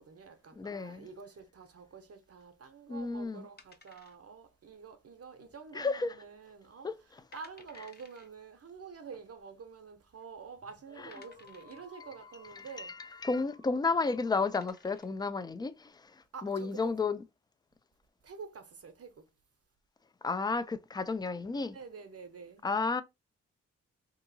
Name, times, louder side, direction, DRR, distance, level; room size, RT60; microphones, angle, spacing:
voice 1, 0.0-6.9 7.3-13.0 16.3-16.9 18.2-19.3 21.7-22.6, right 5 dB, 45° right, 0.7 m, -48 dB
voice 2, 0.6-1.1 2.9-3.5 5.7-6.2 6.8-7.2 11.0-11.1 12.5-17.2 20.2-21.8 22.6-23.0, left 4 dB, 15° left, 0.3 m, -32 dB
sound 1, 3.6-4.5 4.8-4.9 5.5-5.9 6.3-6.4 7.0-7.1 7.3-8.3 9.4-9.5 10.1-10.2 11.1-11.9 13.8-13.9 14.3-15.2, left 4 dB, 30° left, 0.7 m, -58 dB
sound 2, 5.3-7.7 8.3-8.4 10.1-10.2 10.4-14.7, left 3 dB, 45° left, 1.1 m, -58 dB
2.7 x 2.7 x 2.6 m
supercardioid pair, 40°, 34 cm